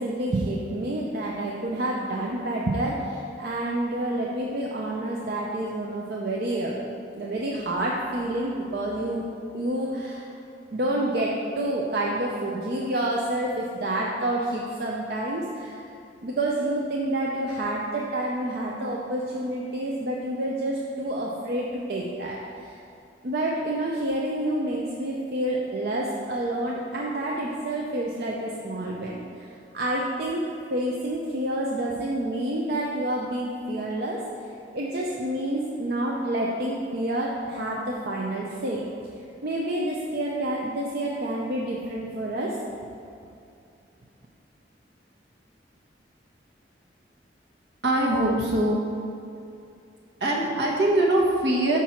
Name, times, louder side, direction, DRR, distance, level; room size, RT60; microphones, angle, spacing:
voice 1, 0.0-6.8 7.1-9.3 9.5-10.3 10.7-15.8 16.2-22.8 23.2-29.5 29.7-30.4 30.7-34.2 34.7-38.8 39.4-42.5, right 1 dB, 60° right, -3 dB, 0.6 m, -28 dB
voice 2, 47.8-48.8 50.2-51.8, right 1 dB, 75° right, -3 dB, 1.3 m, -22 dB
5.8 x 4.6 x 5.7 m, 2.6 s
head